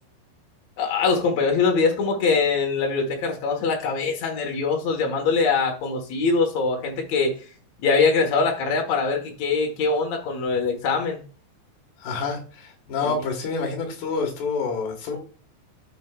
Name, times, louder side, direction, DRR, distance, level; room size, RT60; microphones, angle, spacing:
voice 1, 0.8-7.3 7.8-11.2 13.0-13.2, left 4 dB, 85° left, 2 dB, 1.5 m, -23 dB
voice 2, 12.0-15.2, left 4 dB, 65° left, 2 dB, 3.5 m, -28 dB
12.0 x 6.4 x 2.4 m, 0.39 s
omnidirectional pair, 5.4 m